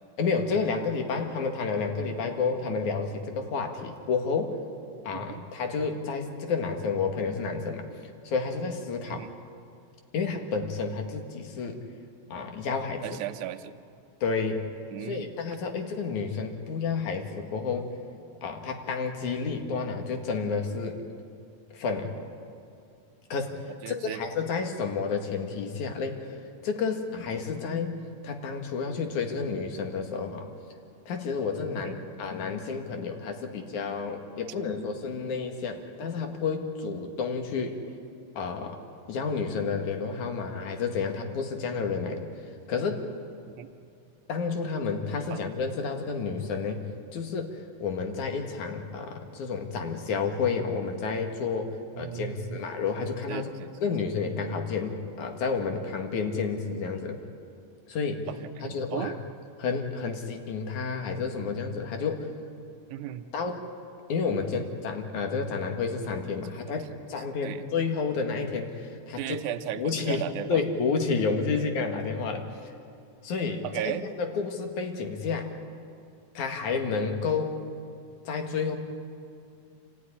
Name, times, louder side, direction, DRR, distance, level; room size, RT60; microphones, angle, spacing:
voice 1, 0.2-4.5 5.0-7.9 8.2-9.2 10.1-11.8 12.3-13.2 14.2-14.7 15.1-17.9 18.4-21.0 21.7-22.1 23.3-26.4 26.6-27.9 28.2-30.5 31.1-37.8 38.4-38.8 39.1-42.3 42.7-43.0 44.3-46.8 47.1-53.5 53.8-57.2 57.9-58.3 58.7-59.1 59.6-62.3 63.3-63.7 64.1-69.4 69.7-70.2 70.5-72.5 73.2-75.5 76.3-77.5 78.2-78.8, left 5 dB, 65° left, 4 dB, 3.1 m, -30 dB
voice 2, 5.1-5.5 9.0-9.3 13.0-13.7 14.9-15.3 23.8-24.2 31.8-32.0 43.5-43.7 45.3-45.5 51.9-52.6 53.3-53.7 58.3-59.2 62.9-63.3 67.4-67.6 69.2-70.6 73.6-74.1, right 12 dB, 70° right, 8 dB, 2.2 m, -36 dB
29.0 x 15.0 x 10.0 m, 2.5 s
omnidirectional pair, 3.9 m